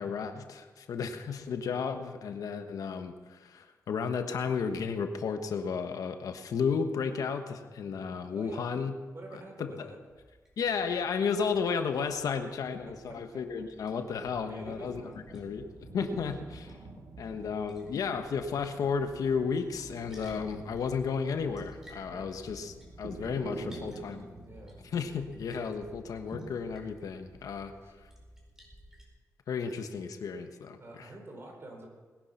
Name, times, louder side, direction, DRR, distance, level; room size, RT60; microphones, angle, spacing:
voice 1, 0.0-8.9 9.3-9.9 10.6-15.0 15.3-15.7 15.9-16.8 17.2-24.3 24.8-27.7 29.5-31.1, left 6 dB, 85° left, 7 dB, 1.2 m, -33 dB
voice 2, 8.3-8.7 9.1-10.0 12.9-13.7 14.4-15.2 22.1-22.3 23.0-24.1 24.5-24.8 27.6-27.9 30.8-31.9, right 1 dB, 45° right, 2 dB, 4.7 m, -47 dB
Liquid, 10.1-29.0, equal, 10° right, 4.7 m, -54 dB
sound 1, 14.6-26.6, right 2 dB, 60° right, 2.1 m, -48 dB
20.5 x 10.0 x 5.8 m, 1.4 s
cardioid pair, 85°, 6 cm